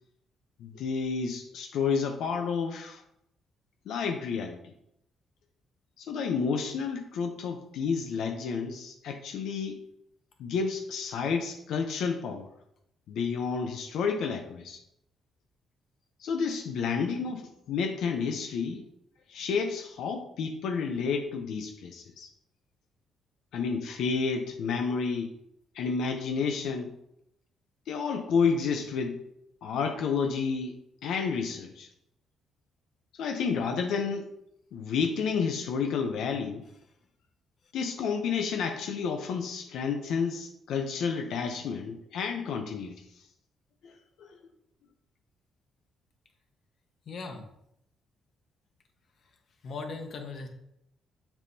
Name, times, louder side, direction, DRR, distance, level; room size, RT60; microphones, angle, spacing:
voice 1, 0.6-3.0 3.9-4.7 6.0-9.8 10.4-12.5 13.1-14.8 16.2-18.8 19.3-22.3 23.5-25.3 25.7-26.9 27.9-29.2 29.6-31.9 33.2-34.3 34.7-36.6 37.7-43.0 43.8-43.9 44.2-44.4, left 5 dB, 80° left, 4 dB, 0.7 m, -30 dB
voice 2, 47.1-47.5 49.6-50.5, left 4 dB, 60° left, 4 dB, 1.3 m, -38 dB
7.1 x 5.5 x 2.8 m, 0.78 s
cardioid pair, 90°, 0 cm